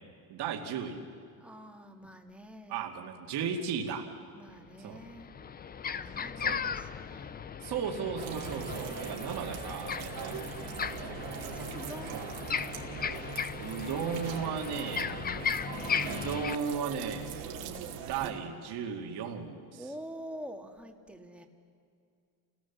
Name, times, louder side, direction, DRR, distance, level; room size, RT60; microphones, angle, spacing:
voice 1, 0.3-1.0 2.7-4.1 4.8-5.0 6.4-6.6 7.6-10.9 12.1-12.3 13.6-15.1 16.0-17.4 18.1-19.8, right 7 dB, 60° right, 1 dB, 2.4 m, -35 dB
voice 2, 1.4-2.8 4.3-5.3 6.0-7.4 10.6-12.2 19.7-21.5, equal, 5° right, 3 dB, 2.0 m, -47 dB
sound 1, 4.5-4.6 5.0-16.6, left 7 dB, 20° left, 0.6 m, -37 dB
sound 2, 8.2-18.3, right 8 dB, 80° right, 2.7 m, -41 dB
29.0 x 18.5 x 7.3 m, 2.3 s
cardioid pair, 120°, 44 cm